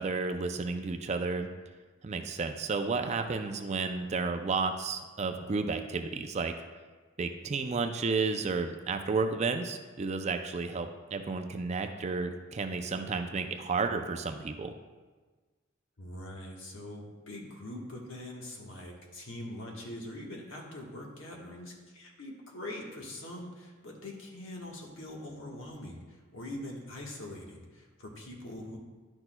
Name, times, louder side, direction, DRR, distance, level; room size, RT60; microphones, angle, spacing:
voice 1, 0.0-1.5 2.0-6.5 7.2-14.7, right 4 dB, 35° right, 7 dB, 0.4 m, -32 dB
voice 2, 3.8-4.1 16.0-28.8, left 1 dB, 70° left, -1 dB, 1.3 m, -43 dB
11.0 x 6.2 x 2.2 m, 1.3 s
head